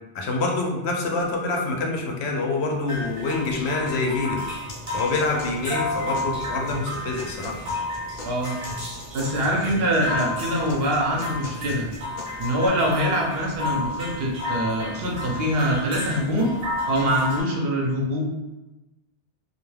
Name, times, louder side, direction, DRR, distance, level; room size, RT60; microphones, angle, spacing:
voice 1, 0.1-4.4 4.9-7.6, left 3 dB, 90° left, 1 dB, 0.9 m, -26 dB
sound 1, 2.9-17.4, left 2 dB, 35° right, 0.7 m, -32 dB
sound 2, 4.7-12.7, left 2 dB, 55° left, 0.7 m, -40 dB
voice 2, 8.2-8.6 9.1-11.9 12.4-16.5 16.9-18.2, equal, 70° right, -1 dB, 0.9 m, -24 dB
2.4 x 2.2 x 3.2 m, 1.0 s
omnidirectional pair, 1.1 m